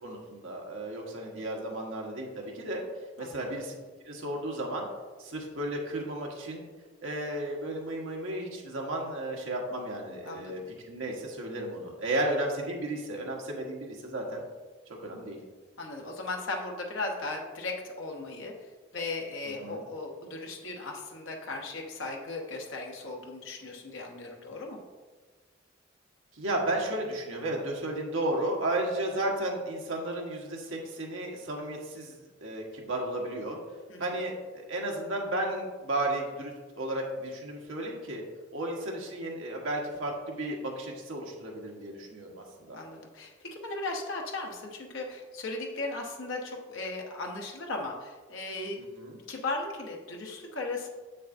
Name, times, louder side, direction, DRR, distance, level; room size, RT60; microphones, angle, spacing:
voice 1, 0.0-2.8 3.2-3.7 4.0-4.9 5.2-6.6 7.0-10.6 10.9-14.4 14.9-15.4 19.5-19.8 26.3-33.6 34.0-38.2 38.5-42.8 48.8-49.2, right 1 dB, 90° right, -1 dB, 1.4 m, -33 dB
voice 2, 10.2-10.7 15.8-24.8 33.9-34.0 42.7-48.8 49.3-50.9, left 2 dB, 80° left, 1 dB, 1.0 m, -37 dB
7.6 x 6.4 x 2.6 m, 1.3 s
head